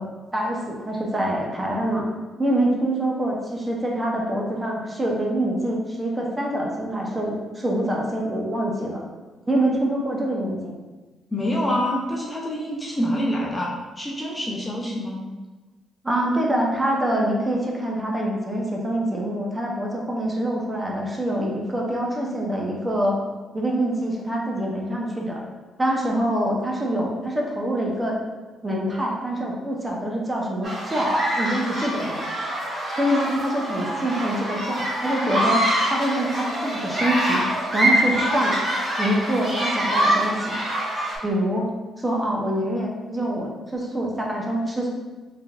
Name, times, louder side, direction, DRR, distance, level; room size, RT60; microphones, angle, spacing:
voice 1, 0.0-2.0 2.4-9.0 9.5-10.7 16.0-23.2 23.5-25.4 25.8-28.2 28.6-32.2 32.9-37.4 37.7-38.6 39.0-40.6 41.2-41.7 42.0-44.9, right 1 dB, 20° right, -2 dB, 0.7 m, -25 dB
voice 2, 11.3-15.2, equal, 20° left, -3 dB, 0.6 m, -26 dB
sound 1, 30.6-41.2, right 1 dB, 40° right, 1.2 m, -25 dB
3.3 x 3.3 x 2.4 m, 1.2 s
cardioid pair, 90°, 0 cm